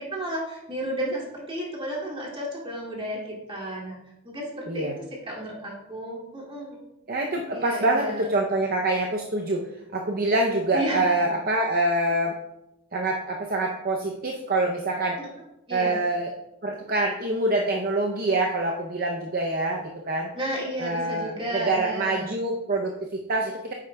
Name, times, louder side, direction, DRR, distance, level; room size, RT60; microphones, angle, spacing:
voice 1, 0.0-4.0 4.2-4.9 5.3-6.8 7.5-8.3 10.7-11.1 15.2-15.3 15.7-16.0 20.3-22.3, right 1 dB, 25° right, -4 dB, 2.5 m, -32 dB
voice 2, 7.1-9.6 9.9-12.3 12.9-15.2 15.7-16.3 16.6-20.3 20.8-23.7, right 2 dB, 40° right, 1 dB, 0.6 m, -25 dB
9.7 x 8.4 x 2.3 m, 0.90 s
head